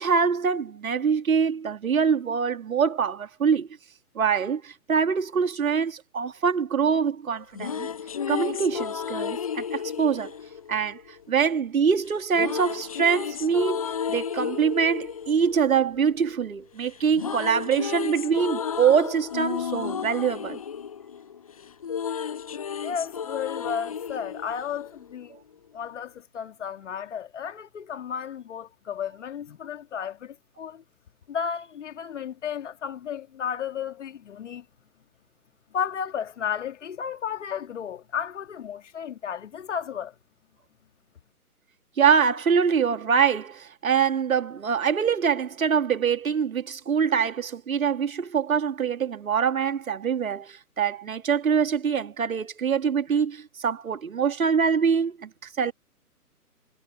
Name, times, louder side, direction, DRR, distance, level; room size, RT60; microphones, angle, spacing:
voice 1, 0.0-3.7 4.2-7.9 8.3-10.3 10.7-20.6 42.0-55.7, right 6 dB, 60° right, 2.0 m, -24 dB
sound 1, 7.3-11.5 12.3-16.6 16.8-25.4, left 7 dB, 25° left, 0.5 m, -33 dB
voice 2, 22.8-25.4 25.7-30.8 31.3-34.6 35.7-40.1, left 8 dB, 50° left, 2.3 m, -33 dB
figure-of-eight pair, 130°, 46 cm